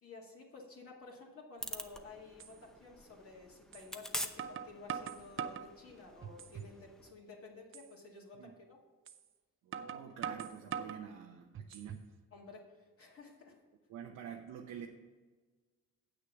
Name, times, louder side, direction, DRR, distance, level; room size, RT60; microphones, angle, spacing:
voice 1, 0.0-8.8 12.3-13.6, left 3 dB, 50° left, -2 dB, 2.2 m, -53 dB
sound 1, 1.6-7.1, equal, ahead, 0.7 m, -46 dB
sound 2, 1.8-1.9 2.4-2.5 3.7-3.9 4.4-5.7 6.2-6.8 7.1-7.2 7.7-7.9 9.1-9.2 9.7-11.0 11.5-12.1, right 8 dB, 45° right, 0.6 m, -42 dB
voice 2, 9.6-12.0 13.9-14.9, right 8 dB, 90° right, 1 dB, 0.9 m, -48 dB
8.2 x 6.6 x 5.9 m, 1.3 s
cardioid pair, 90°, 30 cm